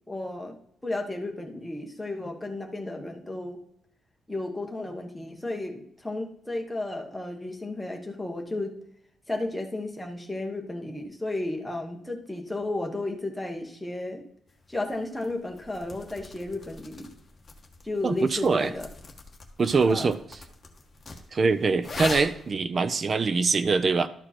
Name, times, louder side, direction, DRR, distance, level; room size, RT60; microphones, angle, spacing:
voice 1, 0.1-0.6 0.8-3.6 4.3-8.8 9.3-14.2 14.7-17.1 17.8-18.9 19.9-20.2, left 2 dB, 5° left, 1 dB, 1.2 m, -33 dB
sound 1, 14.5-22.6, left 3 dB, 25° left, 1.3 m, -42 dB
voice 2, 18.0-18.7 19.6-20.2 21.3-24.1, right 4 dB, 35° right, 13 dB, 0.5 m, -23 dB
12.0 x 4.9 x 4.3 m, 0.73 s
cardioid pair, 130°, 0 cm